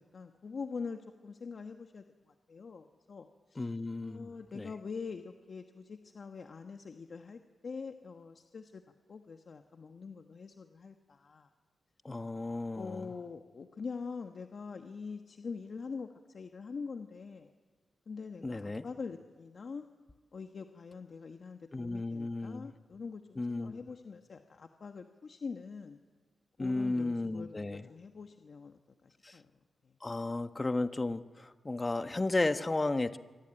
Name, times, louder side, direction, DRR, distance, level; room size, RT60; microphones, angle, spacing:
voice 1, 0.0-2.0 2.5-3.7 4.0-8.8 9.1-11.5 12.7-17.5 18.1-19.9 20.3-26.0 26.6-29.5 29.8-29.9, left 5 dB, 60° left, 6 dB, 1.3 m, -44 dB
voice 2, 3.5-4.7 12.0-13.1 18.4-18.8 21.7-22.7 23.4-23.8 26.6-27.9 29.2-29.4 30.0-33.2, left 2 dB, 30° left, 9 dB, 1.4 m, -34 dB
25.5 x 23.5 x 9.0 m, 1.4 s
cardioid pair, 60°, 0 cm